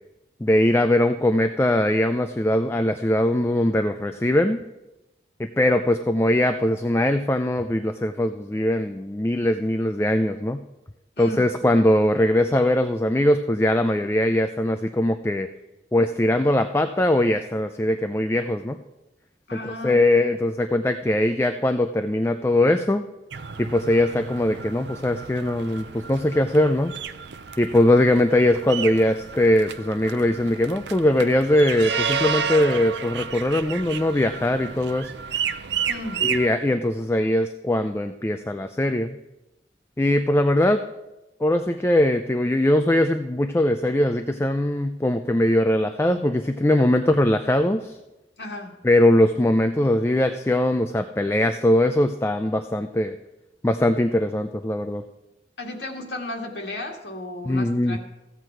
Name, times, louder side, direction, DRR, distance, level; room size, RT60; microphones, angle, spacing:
voice 1, 0.4-4.6 5.4-10.6 11.2-15.5 15.9-18.8 19.6-23.0 23.6-26.9 27.6-35.1 36.2-39.2 40.0-40.8 41.4-48.0 48.8-53.2 53.6-55.0 57.5-58.0, left 1 dB, 15° left, 8 dB, 0.3 m, -21 dB
voice 2, 19.5-20.0 35.9-36.2 48.4-48.7 55.6-58.0, left 2 dB, 75° left, 1 dB, 1.8 m, -34 dB
sound 1, 23.3-36.5, right 6 dB, 85° right, 0.5 m, -31 dB
15.0 x 8.0 x 4.5 m, 0.99 s
head